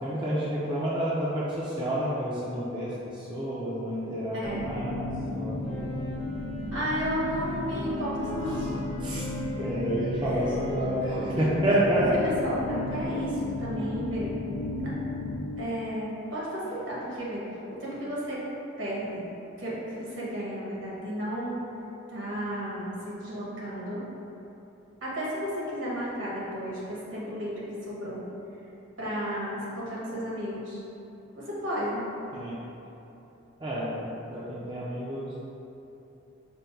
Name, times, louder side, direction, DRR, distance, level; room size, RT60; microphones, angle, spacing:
voice 1, 0.0-5.8 9.0-9.2 9.6-12.0 32.3-32.6 33.6-35.3, right 1 dB, 25° right, -8 dB, 0.5 m, -30 dB
voice 2, 4.3-4.6 5.4-5.5 6.7-8.7 9.5-9.6 10.2-10.4 11.1-11.5 12.1-14.3 14.7-14.9 15.6-17.4 17.7-18.4 18.8-19.2 19.6-21.6 22.1-24.0 25.0-28.2 29.0-30.8 31.3-32.0, equal, 65° right, -8 dB, 1.3 m, -33 dB
sound 1, 4.4-15.4, left 2 dB, 35° left, 0.6 m, -33 dB
Wind instrument woodwind instrument, 5.6-13.6, left 1 dB, 90° left, 1.1 m, -43 dB
5.2 x 2.1 x 4.4 m, 3.0 s
head